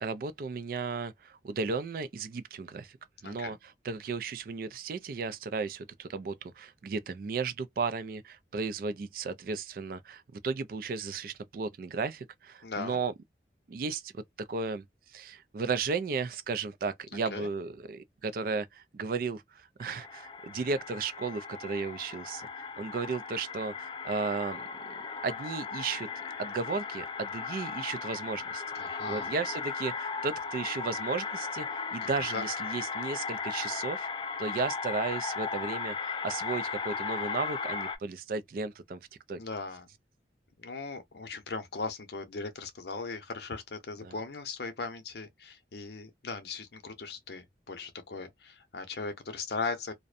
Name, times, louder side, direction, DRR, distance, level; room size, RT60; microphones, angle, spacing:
voice 1, 0.0-3.0 3.2-13.1 13.7-14.8 15.1-24.9 25.2-26.1 26.4-28.6 29.1-34.1 34.4-39.0 39.3-39.4 44.0-44.2, right 4 dB, 50° right, 0.3 m, -34 dB
voice 2, 3.2-3.6 12.6-13.0 17.1-17.5 28.8-29.3 32.0-32.1 32.3-32.4 39.4-39.9 40.6-49.9, left 4 dB, 65° left, 0.7 m, -38 dB
sound 1, 19.8-38.0, left 5 dB, 25° left, 0.3 m, -36 dB
2.5 x 2.1 x 2.4 m
head